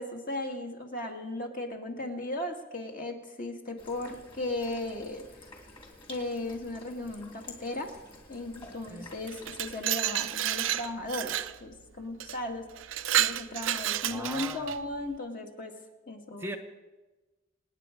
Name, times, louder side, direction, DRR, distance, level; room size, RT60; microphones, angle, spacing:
voice 1, 0.0-5.2 6.1-7.9 8.3-11.3 11.6-12.7 13.2-15.7 16.1-16.6, left 2 dB, 45° left, 2 dB, 2.1 m, -36 dB
sound 1, 3.8-9.8, left 2 dB, 25° left, 2.9 m, -50 dB
Glass, 9.3-11.5 12.2-12.4 12.8-14.8, right 12 dB, 90° right, 0.6 m, -30 dB
voice 2, 14.1-14.7 16.4-16.6, right 1 dB, 10° right, 6 dB, 0.9 m, -39 dB
27.5 x 9.5 x 5.2 m, 1.2 s
head